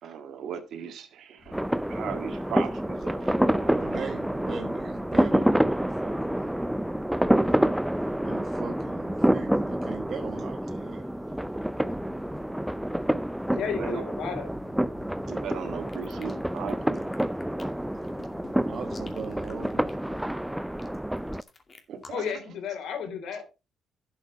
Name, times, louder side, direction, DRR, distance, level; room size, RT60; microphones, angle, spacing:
voice 1, 0.0-3.9 13.7-14.0 15.2-17.0 21.9-22.2, right 7 dB, 70° right, 5 dB, 1.8 m, -37 dB
sound 1, 1.4-20.0, left 2 dB, 50° left, 2.7 m, -52 dB
sound 2, 1.5-21.4, right 1 dB, 5° right, 0.4 m, -28 dB
voice 2, 3.7-6.5 8.2-11.0 16.2-16.4 18.7-19.9, right 6 dB, 55° right, 4 dB, 1.4 m, -40 dB
voice 3, 13.6-14.5 22.1-23.4, left 7 dB, 80° left, 6 dB, 3.6 m, -34 dB
sound 3, 15.9-22.4, left 3 dB, 35° left, 2.3 m, -51 dB
11.5 x 6.5 x 4.7 m, 0.28 s
cardioid pair, 90°, 0 cm